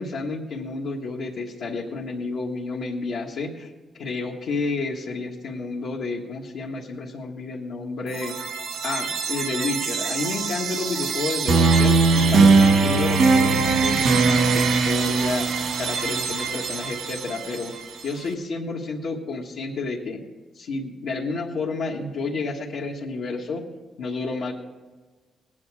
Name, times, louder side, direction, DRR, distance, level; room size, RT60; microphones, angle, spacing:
voice 1, 0.0-8.4 8.8-15.5 15.8-17.7 18.0-20.2 20.5-23.6 24.0-24.5, left 3 dB, 80° left, -4 dB, 1.4 m, -30 dB
sound 1, 8.1-18.0, right 4 dB, 80° right, 1.6 m, -21 dB
18.5 x 9.5 x 4.8 m, 1.3 s
cardioid pair, 100°, 0 cm